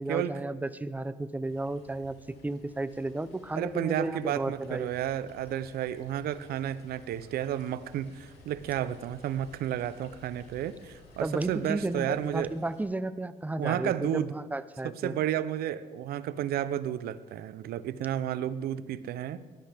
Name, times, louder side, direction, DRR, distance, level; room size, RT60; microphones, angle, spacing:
voice 1, 0.0-4.9 11.2-15.2, right 2 dB, 10° right, 14 dB, 0.7 m, -33 dB
sound 1, 1.4-12.8, left 1 dB, 85° left, 2.9 m, -55 dB
voice 2, 3.5-12.5 13.6-14.3 14.8-19.4, right 11 dB, 70° right, 15 dB, 0.7 m, -32 dB
19.0 x 12.0 x 3.5 m, 1.4 s
supercardioid pair, 80°, 16 cm